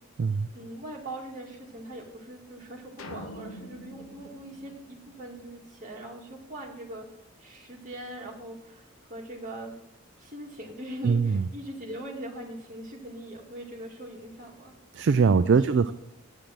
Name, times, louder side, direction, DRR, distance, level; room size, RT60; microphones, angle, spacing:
voice 1, 0.5-7.1 7.4-9.7 10.2-14.7 15.3-15.9, right 1 dB, 35° right, -1 dB, 2.2 m, -41 dB
sound 1, 3.0-5.5, equal, 70° left, 0.9 m, -44 dB
voice 2, 11.0-11.4 14.9-15.9, right 5 dB, 50° right, 11 dB, 0.3 m, -22 dB
8.6 x 6.7 x 7.7 m, 0.80 s
head